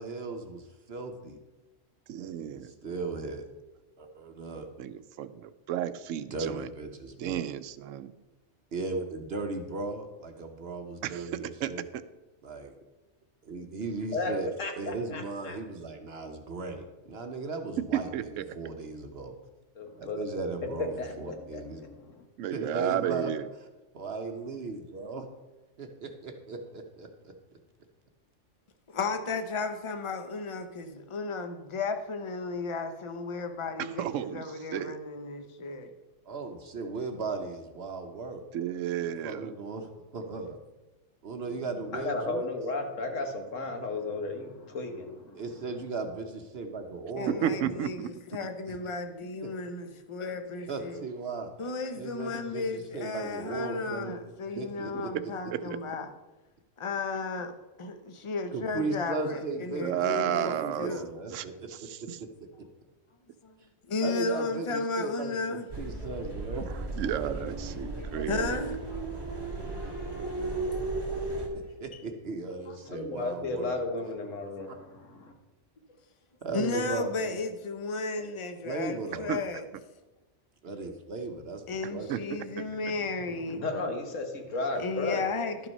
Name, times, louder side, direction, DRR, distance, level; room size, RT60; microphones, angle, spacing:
voice 1, 0.0-1.4 2.2-3.5 4.0-4.7 6.3-7.4 8.7-11.9 12.4-12.7 13.4-14.5 14.8-19.3 20.0-21.8 22.5-23.3 23.9-25.3 25.8-27.3 36.3-38.4 39.0-40.6 41.2-42.5 45.4-47.7 48.7-48.8 49.4-49.5 50.7-51.5 52.0-54.1 54.5-55.1 58.5-61.9 62.2-62.3 62.6-62.7 64.0-66.7 67.7-68.2 71.2-73.8 74.7-74.8 76.4-77.4 78.2-78.3 78.6-79.3 80.6-81.6 81.9-82.1, right 3 dB, 55° right, 5 dB, 1.1 m, -37 dB
voice 2, 2.1-2.7 4.8-6.7 7.2-8.1 11.0-11.7 17.8-18.4 22.4-23.4 33.8-34.4 34.7-35.0 38.5-39.5 47.3-48.1 55.5-55.8 59.8-60.9 61.3-62.2 67.0-68.5 79.3-79.4 82.1-82.2, right 10 dB, 90° right, 13 dB, 0.9 m, -32 dB
voice 3, 14.6-15.6 19.7-20.2 20.7-22.2 41.9-45.4 68.1-68.5 72.8-75.3 82.4-82.8 83.5-85.2, left 3 dB, 90° left, 4 dB, 1.6 m, -34 dB
voice 4, 28.9-35.9 47.2-51.0 51.6-56.1 56.8-57.5 57.8-61.1 63.4-63.5 63.8-65.7 67.9-68.8 70.2-70.9 71.5-71.7 72.7-72.8 76.5-79.6 81.7-83.7 84.8-85.7, left 3 dB, 30° left, 7 dB, 0.7 m, -34 dB
sound 1, 65.7-71.5, right 2 dB, 20° right, 1.8 m, -35 dB
11.5 x 6.0 x 5.3 m, 1.1 s
omnidirectional pair, 1.3 m